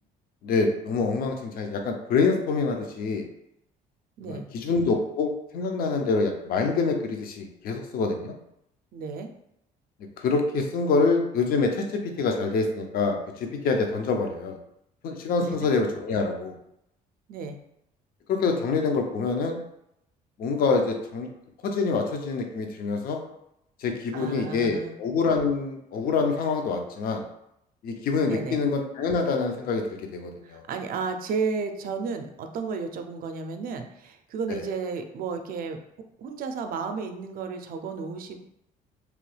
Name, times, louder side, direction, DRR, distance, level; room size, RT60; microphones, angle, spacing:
voice 1, 0.4-3.3 4.2-8.4 10.2-14.6 15.0-16.5 18.3-19.6 20.4-21.3 21.6-23.2 23.8-27.2 27.8-30.6 34.5-34.6, left 4 dB, 60° left, 4 dB, 0.5 m, -26 dB
voice 2, 4.2-4.5 8.9-9.3 15.4-15.7 17.3-17.6 24.1-25.0 28.2-28.6 30.4-35.8 36.2-38.4, right 5 dB, 60° right, 6 dB, 0.4 m, -33 dB
2.9 x 2.2 x 3.2 m, 0.79 s
cardioid pair, 110°, 17 cm